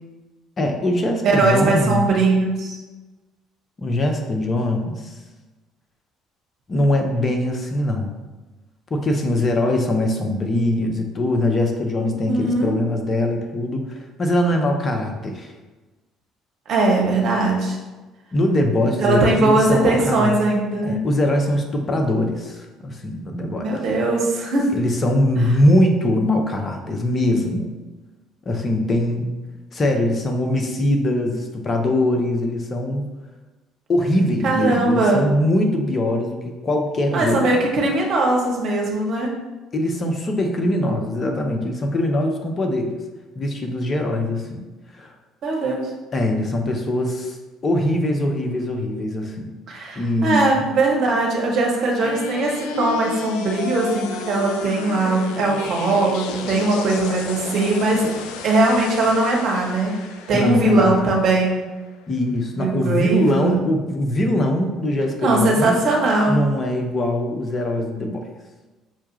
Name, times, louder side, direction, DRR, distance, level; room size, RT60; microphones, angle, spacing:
voice 1, 0.6-2.1 3.8-5.2 6.7-8.2 8.9-15.5 18.3-20.3 20.8-23.7 24.7-27.8 28.5-29.3 29.7-33.0 33.9-37.6 39.7-43.0 43.4-44.6 44.9-45.1 46.1-47.4 47.6-49.5 50.0-50.6 60.3-61.1 62.1-65.7 66.3-68.3, left 1 dB, 35° left, 3 dB, 0.7 m, -22 dB
voice 2, 1.2-2.8 12.2-12.8 16.7-17.8 19.0-21.0 23.6-24.7 34.4-35.3 37.1-39.3 45.4-45.9 49.7-58.0 58.4-60.0 60.3-61.6 62.5-63.6 65.2-66.4, right 2 dB, 55° right, -1 dB, 1.0 m, -20 dB
sound 1, 52.0-62.0, left 5 dB, 70° left, 0.3 m, -33 dB
5.8 x 2.3 x 3.0 m, 1.2 s
hypercardioid pair, 55°, 0 cm